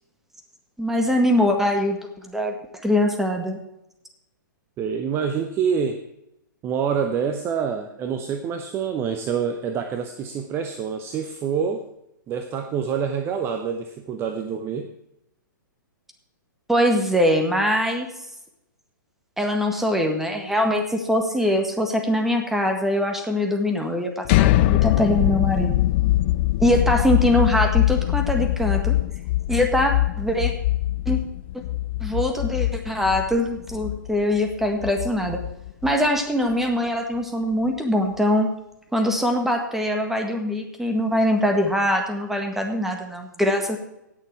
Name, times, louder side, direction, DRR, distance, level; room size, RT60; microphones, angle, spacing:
voice 1, 0.8-2.5 2.8-3.6 16.7-18.1 19.4-25.7 26.6-29.0 29.5-30.5 31.0-31.2 32.0-35.4 35.8-38.5 38.9-43.8, left 1 dB, 5° right, 3 dB, 1.6 m, -22 dB
voice 2, 4.8-6.0 6.6-11.8 12.3-14.9, right 7 dB, 20° right, 7 dB, 0.8 m, -26 dB
sound 1, 24.2-36.1, left 16 dB, 35° left, 0.4 m, -22 dB
17.5 x 6.7 x 4.7 m, 0.85 s
figure-of-eight pair, 115°, 11 cm